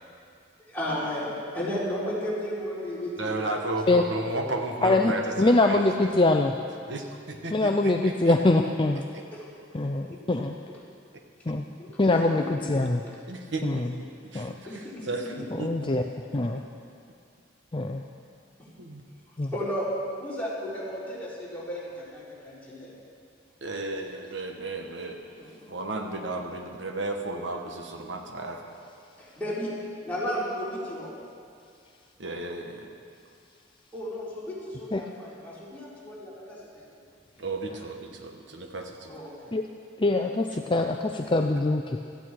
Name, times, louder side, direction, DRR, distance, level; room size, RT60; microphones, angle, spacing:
voice 1, 0.6-3.6 9.3-9.5 10.0-10.2 11.8-11.9 12.6-12.7 14.6-15.1 18.8-18.9 19.5-19.9 20.2-22.9 25.4-25.7 29.2-29.7 30.0-31.1 33.9-36.9 39.1-39.5, equal, 10° left, -9 dB, 4.6 m, -34 dB
voice 2, 3.2-6.2 6.9-8.3 9.1-9.2 13.3-15.7 16.0-16.1 16.5-16.6 18.8-19.0 23.6-25.2 25.6-28.7 32.2-32.9 37.4-39.2, right 2 dB, 70° right, 3 dB, 1.3 m, -34 dB
voice 3, 4.8-6.5 7.5-9.0 9.7-10.6 11.5-11.6 12.0-13.0 13.6-13.9 14.3-14.5 15.6-16.0 16.3-16.6 17.7-18.0 19.4-19.5 34.9-35.0 39.5-39.7 40.0-42.0, left 2 dB, 25° left, 4 dB, 0.5 m, -23 dB
17.5 x 14.0 x 4.7 m, 2.3 s
head